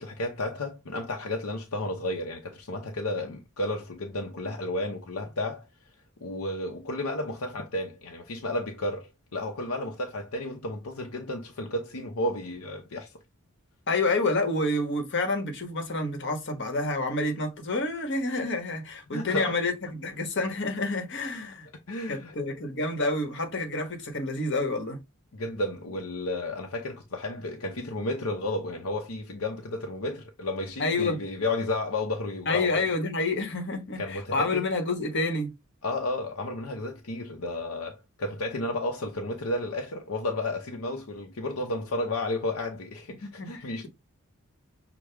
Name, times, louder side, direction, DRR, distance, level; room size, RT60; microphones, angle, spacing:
voice 1, 0.0-5.7 6.2-13.1 19.1-19.6 21.9-22.3 25.3-32.9 34.0-34.6 35.8-43.9, left 2 dB, 85° left, 0.8 m, -32 dB
voice 2, 13.9-21.7 22.1-25.0 30.8-31.2 32.5-35.5 43.2-43.9, left 2 dB, 55° left, 1.2 m, -28 dB
6.3 x 2.2 x 3.4 m
head